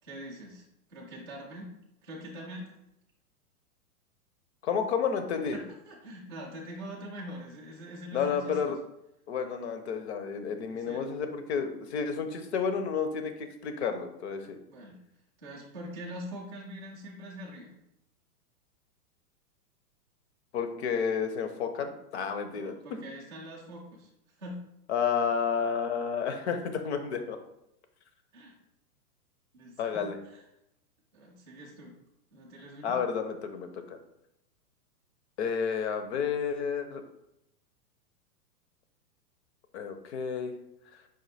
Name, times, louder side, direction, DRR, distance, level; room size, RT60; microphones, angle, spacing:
voice 1, 0.0-0.6 0.9-1.7 2.0-2.8 5.5-8.8 10.7-11.0 14.7-15.0 15.4-17.7 22.5-24.1 24.4-24.7 28.3-28.6 29.5-30.4 31.1-31.9 32.3-33.0, equal, 20° right, -5 dB, 0.3 m, -43 dB
voice 2, 4.6-5.6 8.1-8.8 9.3-14.6 20.5-22.8 24.9-27.4 29.8-30.2 32.8-34.0 35.4-37.0 39.7-40.5 40.9-41.0, left 6 dB, 45° left, 8 dB, 0.6 m, -31 dB
5.1 x 2.5 x 4.1 m, 0.83 s
hypercardioid pair, 150°, 47 cm